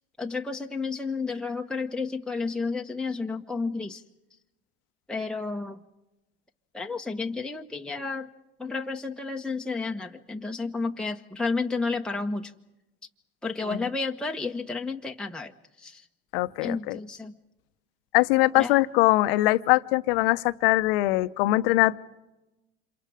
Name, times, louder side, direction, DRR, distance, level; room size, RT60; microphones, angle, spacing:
voice 1, 0.2-4.0 5.1-5.8 6.7-8.3 8.6-12.5 13.4-16.1 16.6-17.4 18.5-18.8, left 4 dB, 5° left, 2 dB, 1.1 m, -31 dB
voice 2, 16.3-17.0 18.1-22.0, left 19 dB, 75° left, 14 dB, 0.9 m, -22 dB
29.5 x 27.0 x 5.0 m, 0.98 s
hypercardioid pair, 80°, 30 cm